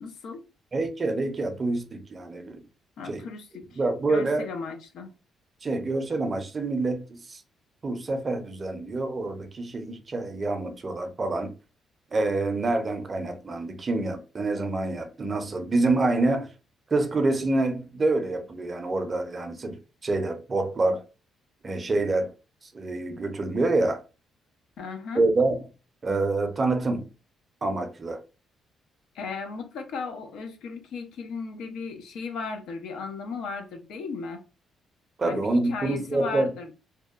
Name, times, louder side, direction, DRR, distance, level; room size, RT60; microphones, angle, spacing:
voice 1, 0.0-0.4 3.0-3.8 4.1-5.1 24.8-25.3 29.1-34.4 35.2-36.7, left 4 dB, 80° left, 0.5 m, -36 dB
voice 2, 0.7-2.6 3.0-3.3 3.8-4.5 5.6-7.4 7.8-11.5 12.1-16.5 16.9-19.8 20.0-21.0 21.6-22.3 22.7-24.0 25.1-25.6 26.0-27.1 27.6-28.2 35.2-36.5, right 2 dB, 35° right, 0.5 m, -26 dB
2.8 x 2.1 x 2.3 m
cardioid pair, 90°, 0 cm